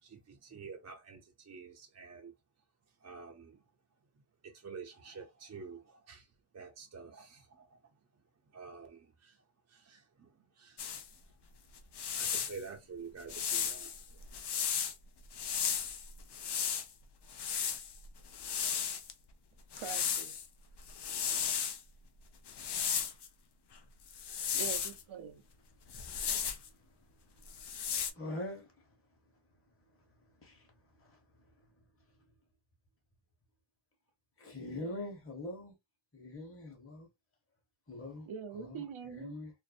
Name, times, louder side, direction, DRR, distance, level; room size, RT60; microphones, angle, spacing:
voice 1, 0.0-2.3 2.9-3.6 4.2-11.2 12.1-14.3, right 5 dB, 35° right, 0.5 m, -50 dB
sound 1, 10.8-11.1 11.8-12.6 13.3-14.9 15.3-16.9 17.3-19.1 19.7-20.5 20.8-21.8 22.5-23.3 24.1-25.0 25.9-26.7 27.5-28.1, left 7 dB, 55° left, 0.6 m, -35 dB
voice 2, 19.7-20.4 24.5-25.4 38.3-39.4, right 7 dB, 80° right, 0.6 m, -43 dB
voice 3, 28.1-28.7 30.4-30.7 31.0-31.2 34.4-35.7 36.1-37.1 37.9-38.3 38.5-39.5, left 1 dB, 25° left, 1.0 m, -43 dB
2.6 x 2.0 x 2.4 m
cardioid pair, 65°, 48 cm